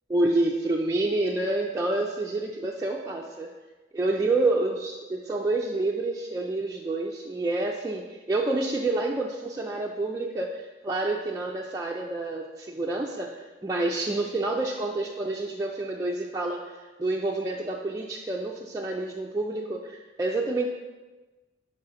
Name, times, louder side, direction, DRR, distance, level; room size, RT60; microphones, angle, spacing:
voice 1, 0.1-3.5 3.9-20.7, right 2 dB, 15° right, -2 dB, 0.3 m, -28 dB
5.3 x 3.8 x 5.6 m, 1.2 s
head